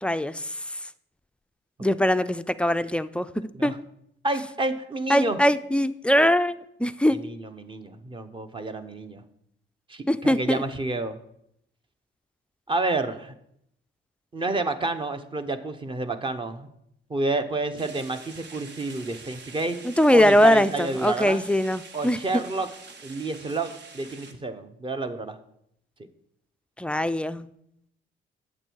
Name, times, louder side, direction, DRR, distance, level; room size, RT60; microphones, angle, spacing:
voice 1, 0.0-0.4 1.8-3.3 3.6-3.7 5.1-6.5 6.8-7.2 10.1-10.6 19.8-22.2 26.8-27.5, equal, 5° left, 12 dB, 0.4 m, -21 dB
voice 2, 4.2-5.4 7.1-9.2 9.9-11.2 12.7-13.3 14.3-16.7 17.1-19.8 20.1-21.4 21.9-22.7 23.0-23.7 23.9-25.4, right 2 dB, 25° right, 9 dB, 0.9 m, -29 dB
sound 1, 17.8-24.3, right 4 dB, 60° right, 1.1 m, -46 dB
8.7 x 7.1 x 4.6 m, 0.74 s
cardioid pair, 90°, 20 cm